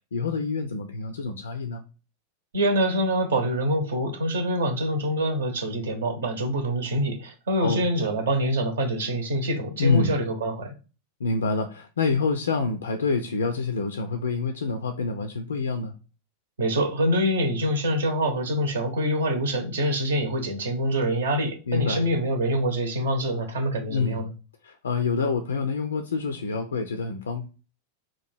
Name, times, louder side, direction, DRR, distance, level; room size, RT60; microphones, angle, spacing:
voice 1, 0.1-1.8 7.6-7.8 9.8-10.1 11.2-15.9 21.7-22.1 23.9-24.3 24.6-27.4, left 4 dB, 70° left, 0.3 m, -27 dB
voice 2, 2.5-10.7 16.6-24.3, equal, 65° right, 0.8 m, -25 dB
2.9 x 2.4 x 4.3 m
figure-of-eight pair, 90°, 0 cm